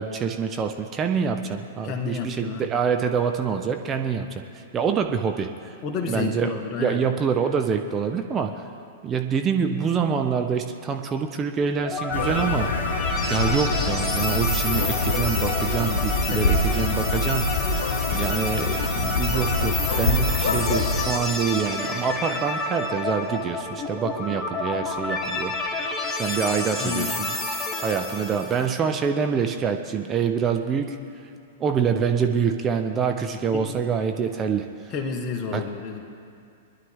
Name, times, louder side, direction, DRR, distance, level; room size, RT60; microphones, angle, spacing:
voice 1, 0.0-4.4 4.7-5.8 6.1-6.5 6.8-8.7 9.0-12.7 13.3-17.7 18.1-25.6 26.2-27.3 27.8-31.0 31.6-34.7 35.5-35.6, right 6 dB, 25° right, 5 dB, 0.8 m, -26 dB
voice 2, 1.8-2.7 5.8-7.0 16.3-16.6 20.4-20.9 22.3-22.4 26.8-27.1 33.5-33.7 34.9-36.0, left 5 dB, 35° left, 4 dB, 1.7 m, -31 dB
sound 1, 11.8-28.7, left 2 dB, 10° left, 1.6 m, -29 dB
sound 2, 12.1-21.1, left 2 dB, 65° left, 1.3 m, -25 dB
23.0 x 11.0 x 3.7 m, 2.4 s
figure-of-eight pair, 100°, 0 cm